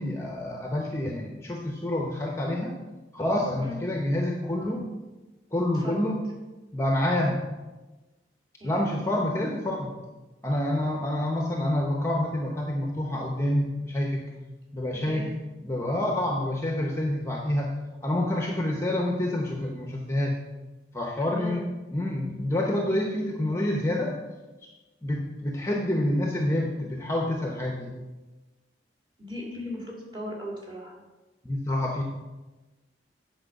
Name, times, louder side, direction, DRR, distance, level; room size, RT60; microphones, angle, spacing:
voice 1, 0.0-2.8 3.1-4.9 5.5-6.2 6.7-7.4 8.6-9.9 10.4-14.2 14.7-15.3 15.6-17.7 18.0-20.4 20.9-21.6 21.9-24.2 25.0-27.9 31.4-32.0, left 1 dB, 15° left, 1 dB, 0.8 m, -27 dB
voice 2, 5.7-6.0 8.6-9.0 14.9-15.3 21.3-21.6 29.2-31.0, equal, 25° right, -3 dB, 2.3 m, -38 dB
8.8 x 4.8 x 6.5 m, 1.1 s
head